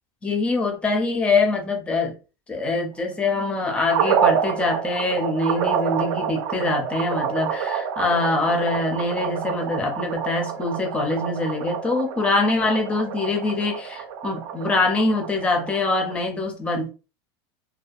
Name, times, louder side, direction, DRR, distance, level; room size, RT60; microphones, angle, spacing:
voice 1, 0.2-2.1 2.5-16.9, left 3 dB, 10° left, 3 dB, 0.4 m, -24 dB
sound 1, 3.9-16.2, right 7 dB, 75° right, 0.5 m, -27 dB
2.5 x 2.2 x 2.3 m, 0.33 s
supercardioid pair, 165°, 14 cm